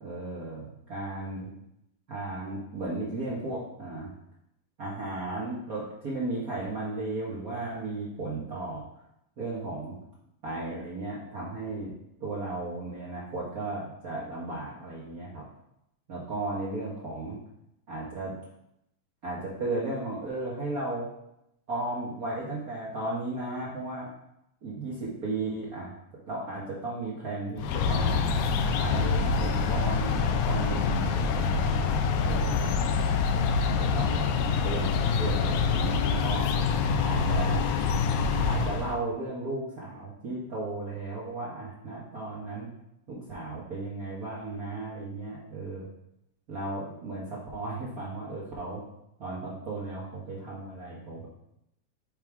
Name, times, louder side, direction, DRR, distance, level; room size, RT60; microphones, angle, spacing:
voice 1, 0.0-1.5 2.1-4.1 4.8-8.8 9.4-10.0 10.4-11.9 12.2-15.4 16.1-17.4 17.9-18.4 19.2-21.1 21.7-24.1 24.6-25.9 26.3-28.2 28.7-31.9 32.2-32.7 33.6-36.5 37.0-37.6 38.5-42.7 43.1-45.9 46.5-48.8 49.2-51.3, right 2 dB, 70° right, -7 dB, 0.8 m, -35 dB
sound 1, 27.6-39.0, left 5 dB, 80° left, 1.9 m, -26 dB
6.6 x 3.6 x 4.6 m, 0.81 s
omnidirectional pair, 3.4 m